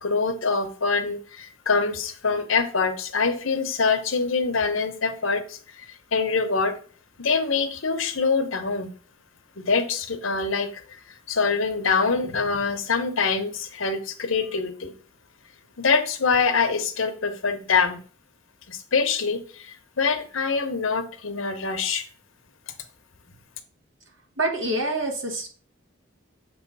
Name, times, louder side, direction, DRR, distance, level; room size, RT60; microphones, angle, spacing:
voice 1, 0.0-6.8 7.2-8.9 9.6-11.0 11.3-14.9 15.8-18.0 18.7-22.0, left 4 dB, 85° left, 8 dB, 0.9 m, -25 dB
voice 2, 24.4-25.5, right 2 dB, 80° right, 3 dB, 1.7 m, -26 dB
7.1 x 3.0 x 5.3 m, 0.41 s
head